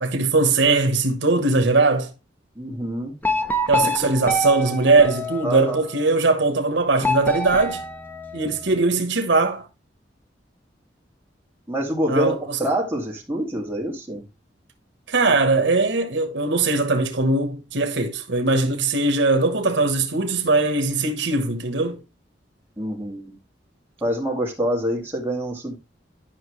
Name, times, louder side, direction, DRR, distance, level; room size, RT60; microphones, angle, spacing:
voice 1, 0.0-2.1 3.7-7.8 8.3-9.7 12.1-12.6 15.1-22.0, right 3 dB, 80° right, 1.2 m, -20 dB
voice 2, 2.6-3.1 3.8-3.9 5.4-5.8 11.7-14.2 22.8-23.3 24.0-25.8, equal, 10° right, 2.1 m, -26 dB
sound 1, 3.2-5.9 7.0-8.8, left 1 dB, 10° left, 0.8 m, -26 dB
10.5 x 5.6 x 3.1 m
head